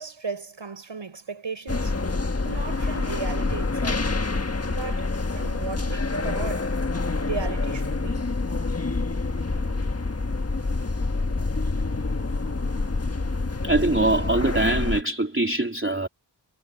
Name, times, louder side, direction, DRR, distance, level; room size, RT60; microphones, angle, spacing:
voice 1, 0.0-1.9 2.4-4.1 4.7-6.7 7.2-8.3, right 5 dB, 75° right, 5.7 m, -35 dB
sound 1, 1.7-15.0, left 3 dB, 30° left, 1.5 m, -27 dB
voice 2, 13.6-16.1, right 2 dB, 25° right, 3.6 m, -23 dB
cardioid pair, 50°, 45 cm